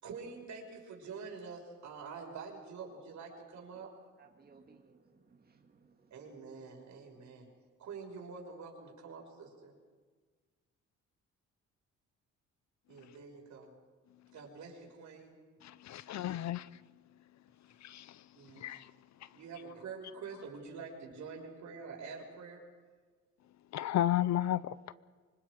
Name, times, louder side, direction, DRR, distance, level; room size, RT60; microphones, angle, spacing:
voice 1, 0.0-3.9 6.1-7.5 7.8-9.7 12.9-13.7 14.3-15.4 18.3-18.7 19.3-22.6, right 5 dB, 70° right, 6.1 m, -46 dB
voice 2, 3.3-3.9 4.2-6.1, right 5 dB, 30° right, 2.2 m, -62 dB
voice 3, 15.6-16.7 17.8-18.2 18.6-18.9 19.2-19.3 23.7-24.9, left 12 dB, 65° left, 0.7 m, -33 dB
25.0 x 25.0 x 5.2 m
cardioid pair, 90°, 30 cm